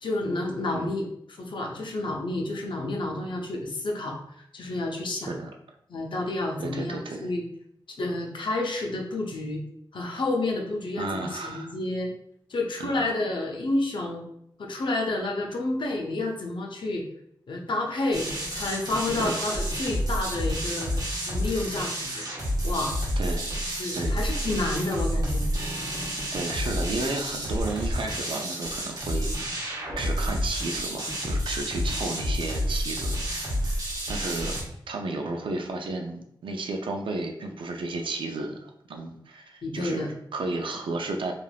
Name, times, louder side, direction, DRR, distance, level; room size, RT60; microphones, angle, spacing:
voice 1, 0.0-1.1 1.4-5.3 5.9-7.4 8.0-9.6 9.9-12.1 12.5-14.2 14.6-17.0 17.5-22.3 22.6-23.0 23.8-25.5 39.6-40.1, left 2 dB, 75° left, 1 dB, 0.6 m, -30 dB
voice 2, 6.6-7.3 11.0-11.7 12.8-13.0 19.2-19.5 23.2-23.5 23.9-24.2 25.5-25.7 26.3-33.8 34.1-34.6 34.9-41.3, right 3 dB, 85° right, 3 dB, 0.4 m, -33 dB
sound 1, 18.1-34.6, equal, 45° right, 0.9 m, -29 dB
3.2 x 2.4 x 2.3 m, 0.73 s
wide cardioid pair, 70°, 8 cm